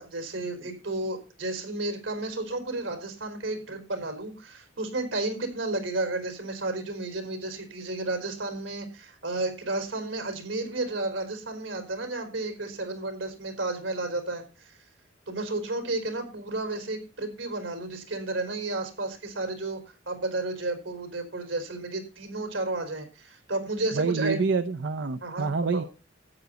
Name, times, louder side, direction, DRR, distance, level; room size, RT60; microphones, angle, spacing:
voice 1, 0.0-14.8 15.3-19.8 20.1-24.4 25.2-25.9, right 2 dB, 85° right, 7 dB, 4.3 m, -32 dB
voice 2, 23.9-25.8, right 4 dB, 65° right, 12 dB, 0.6 m, -27 dB
12.5 x 9.4 x 4.0 m, 0.31 s
head